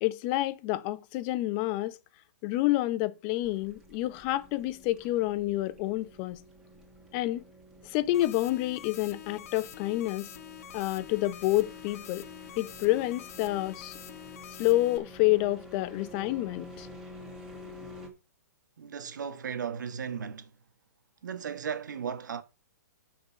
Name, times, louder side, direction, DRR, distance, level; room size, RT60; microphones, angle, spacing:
voice 1, 0.0-2.0 2.4-6.4 7.1-7.4 7.8-10.3 10.7-12.3 12.6-13.9 14.6-16.9, left 17 dB, 30° left, 0.8 m, -28 dB
sound 1, 3.4-18.1, left 1 dB, 5° right, 2.3 m, -50 dB
sound 2, 8.1-15.0, left 11 dB, 55° left, 1.2 m, -46 dB
voice 2, 18.8-20.5 21.2-22.4, right 7 dB, 80° right, 1.3 m, -36 dB
6.5 x 6.0 x 7.1 m
hypercardioid pair, 150°, 10 cm